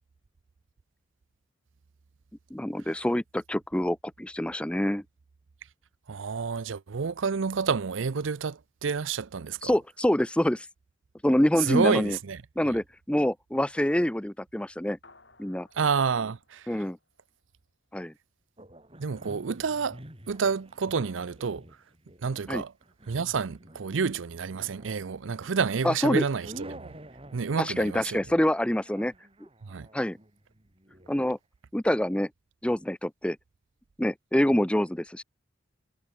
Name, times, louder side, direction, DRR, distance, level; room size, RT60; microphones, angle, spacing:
voice 1, 2.5-5.0 9.6-10.7 11.2-12.2 12.6-15.0 15.4-15.7 16.7-17.0 17.9-18.1 22.5-22.6 25.8-26.2 27.6-29.1 29.9-30.2 31.1-31.4 31.7-32.3 32.6-33.4 34.0-35.2, left 1 dB, 5° left, 0.5 m, -26 dB
voice 2, 6.1-9.8 11.6-12.7 15.7-16.8 19.0-20.0 20.3-21.6 22.2-22.7 23.1-27.0 27.3-28.2 29.6-29.9, right 5 dB, 90° right, 0.6 m, -29 dB
sound 1, 15.0-17.7, left 3 dB, 65° left, 8.0 m, -60 dB
sound 2, 18.6-31.2, right 1 dB, 30° right, 4.2 m, -49 dB
head